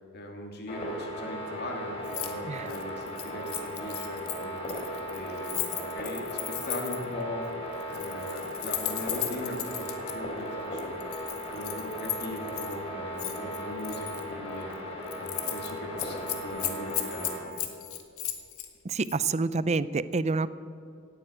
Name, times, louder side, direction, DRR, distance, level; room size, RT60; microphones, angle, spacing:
voice 1, 0.1-6.3 6.6-11.0 11.5-14.7 15.1-17.5, left 1 dB, 50° left, 2 dB, 2.9 m, -39 dB
sound 1, 0.7-17.4, equal, 30° left, 4.2 m, -37 dB
Keys jangling, 2.0-2.3 2.6-7.1 7.8-10.1 10.8-12.8 13.2-14.2 14.6-14.8 15.1-15.7 16.0-18.7 19.0-19.2, left 13 dB, 80° left, 1.6 m, -35 dB
voice 2, 18.8-20.5, right 4 dB, 30° right, 16 dB, 0.5 m, -28 dB
17.0 x 9.2 x 9.1 m, 2.6 s
head